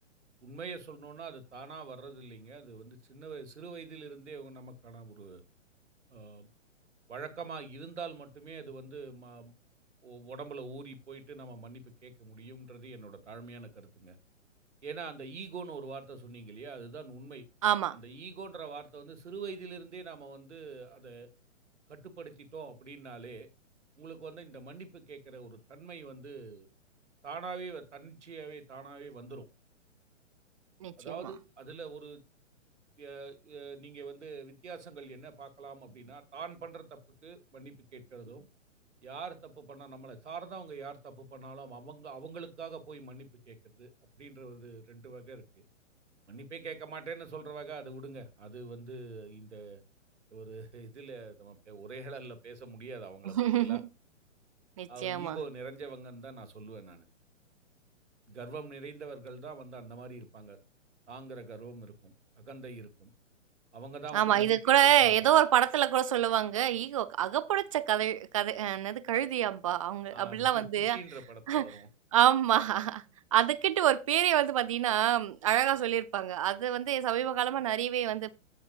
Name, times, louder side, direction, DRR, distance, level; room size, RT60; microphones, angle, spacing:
voice 1, 0.4-5.4 6.1-6.5 7.1-9.5 10.0-14.2 14.8-17.5 17.9-21.3 21.9-23.5 24.0-26.7 27.2-29.5 31.0-32.2 33.0-38.5 39.0-43.9 44.2-45.4 46.3-49.8 50.3-53.8 54.9-57.1 58.3-60.6 61.1-63.1 63.7-64.6 64.9-65.4 70.1-71.9, right 4 dB, 65° right, 2.2 m, -44 dB
voice 2, 17.6-18.0 30.8-31.2 53.3-53.8 54.8-55.4 64.1-71.0 71.5-71.6 72.1-73.0 73.3-78.3, right 11 dB, 25° right, 0.5 m, -27 dB
16.5 x 5.9 x 2.6 m
figure-of-eight pair, 120°, 38 cm